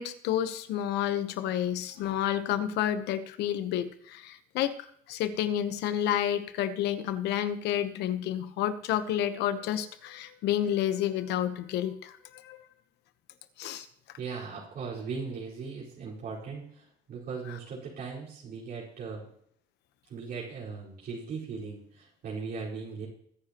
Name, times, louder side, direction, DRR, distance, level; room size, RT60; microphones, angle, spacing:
voice 1, 0.0-12.6 13.6-13.9, left 11 dB, 85° left, 11 dB, 1.1 m, -30 dB
voice 2, 14.2-19.3 20.1-23.1, right 5 dB, 65° right, -7 dB, 4.6 m, -38 dB
21.5 x 10.0 x 3.0 m, 0.65 s
cardioid pair, 110°, 17 cm